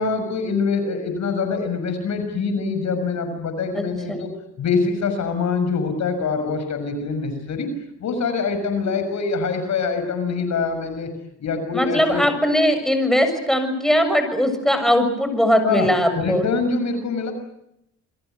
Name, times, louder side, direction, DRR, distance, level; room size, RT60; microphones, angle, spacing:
voice 1, 0.0-4.3 4.6-7.7 8.0-11.1 11.4-12.3 15.6-15.9 16.1-17.3, left 4 dB, 65° left, 8 dB, 6.3 m, -24 dB
voice 2, 3.7-4.3 11.7-16.5, equal, ahead, 8 dB, 6.8 m, -20 dB
28.5 x 22.5 x 8.0 m, 0.80 s
cardioid pair, 90°, 30 cm